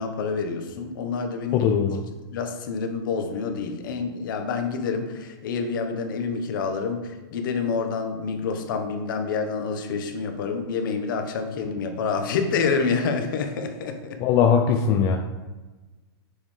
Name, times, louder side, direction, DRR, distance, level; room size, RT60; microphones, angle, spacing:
voice 1, 0.0-1.7 2.3-14.2, left 5 dB, 55° left, 6 dB, 1.2 m, -28 dB
voice 2, 1.5-2.0 14.2-15.2, left 7 dB, 25° left, 4 dB, 0.5 m, -20 dB
6.9 x 6.6 x 3.3 m, 1.2 s
hypercardioid pair, 160°, 13 cm